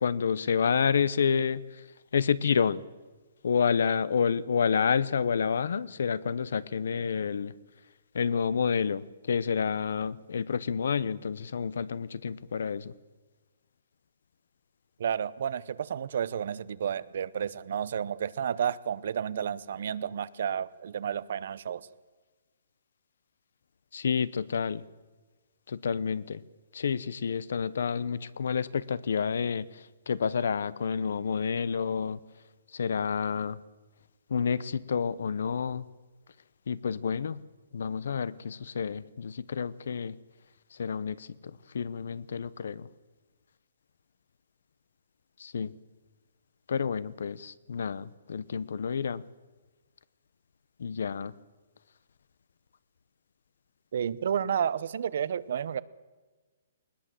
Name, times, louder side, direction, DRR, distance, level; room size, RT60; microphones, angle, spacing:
voice 1, 0.0-1.6 2.1-2.8 3.4-7.5 8.1-12.9 23.9-24.8 25.7-26.4 26.7-29.7 30.1-32.2 32.7-33.6 34.3-35.9 36.7-37.4 37.7-40.2 40.8-42.9 45.4-45.7 46.7-49.3 50.8-51.3, left 6 dB, 65° left, 19 dB, 0.9 m, -29 dB
voice 2, 15.0-21.9 53.9-55.8, right 8 dB, 50° right, 17 dB, 0.8 m, -31 dB
20.5 x 20.0 x 7.7 m, 1.3 s
hypercardioid pair, 175°, 0 cm